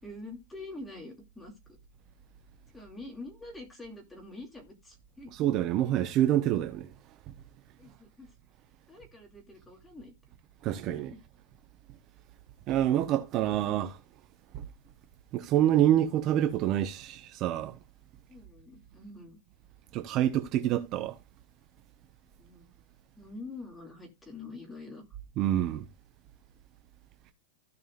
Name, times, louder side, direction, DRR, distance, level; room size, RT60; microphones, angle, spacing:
voice 1, 0.0-1.8 2.7-5.3 7.8-8.3 8.9-10.1 10.9-11.2 18.3-19.4 22.4-22.7 23.2-25.0, left 2 dB, 5° left, 2.6 m, -45 dB
voice 2, 5.3-6.9 7.3-7.4 10.6-11.1 12.7-14.0 14.5-14.6 15.3-17.8 19.9-21.2 25.4-25.8, right 12 dB, 30° right, 0.8 m, -27 dB
15.5 x 5.4 x 2.5 m
supercardioid pair, 155°, 0 cm